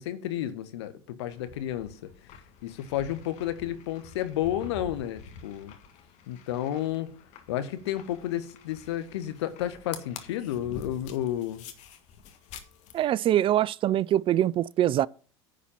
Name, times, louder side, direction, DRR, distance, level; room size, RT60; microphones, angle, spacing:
voice 1, 0.0-2.1 2.6-5.7 6.3-7.1 7.5-11.6, left 12 dB, 80° left, 1.1 m, -31 dB
sound 1, 1.3-13.1, left 6 dB, 55° left, 1.6 m, -47 dB
voice 2, 12.9-15.1, right 12 dB, 40° right, 0.4 m, -24 dB
10.0 x 4.2 x 7.4 m
hypercardioid pair, 85°, 14 cm